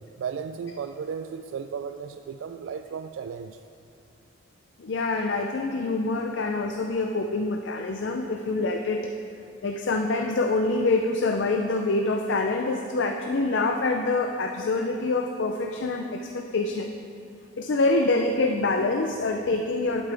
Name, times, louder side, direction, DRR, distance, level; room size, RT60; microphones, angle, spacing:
voice 1, 0.0-3.6, right 6 dB, 75° right, 8 dB, 0.3 m, -35 dB
voice 2, 4.8-9.1 9.6-16.9 17.6-20.1, left 3 dB, 65° left, 3 dB, 0.5 m, -26 dB
11.0 x 8.4 x 3.4 m, 2.5 s
head